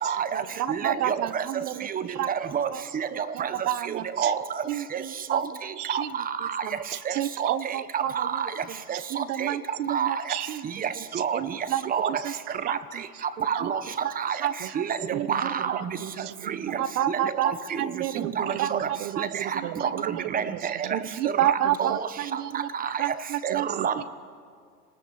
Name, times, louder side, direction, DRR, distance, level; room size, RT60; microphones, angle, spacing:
voice 1, 0.0-0.4 0.7-1.4 1.9-2.0 2.5-2.7 2.9-3.5 4.2-4.4 5.3-5.5 5.9-6.3 7.1-7.2 7.4-8.5 9.4-9.5 9.9-10.1 10.8-10.9 11.1-11.4 11.9-12.1 12.7-12.8 13.5-13.8 14.2-14.4 14.8-14.9 15.3-15.7 16.5-16.6 17.1-17.2 17.4-17.8 18.4-18.9 19.2-19.3 20.0-20.4 20.7-20.8 21.5-22.0 22.8-22.9 23.4-23.9, right 7 dB, 20° right, 12 dB, 1.1 m, -28 dB
voice 2, 0.6-1.3 1.6-1.7 2.2-2.3 2.7-2.8 3.7-4.0 4.7-4.8 5.3-5.4 5.9-6.1 7.1-8.1 9.1-10.6 11.3-11.8 12.6-12.8 13.6-13.7 14.4-14.5 15.1-15.3 16.8-17.5 17.9-18.3 18.6-19.3 20.9-22.0 22.4-22.7 23.0-23.7, right 12 dB, 70° right, 14 dB, 1.2 m, -28 dB
voice 3, 15.1-16.8 17.9-21.0 21.6-22.0 23.5-23.9, right 16 dB, 35° right, 18 dB, 0.7 m, -37 dB
29.5 x 19.5 x 8.1 m, 2.1 s
hypercardioid pair, 125°, 48 cm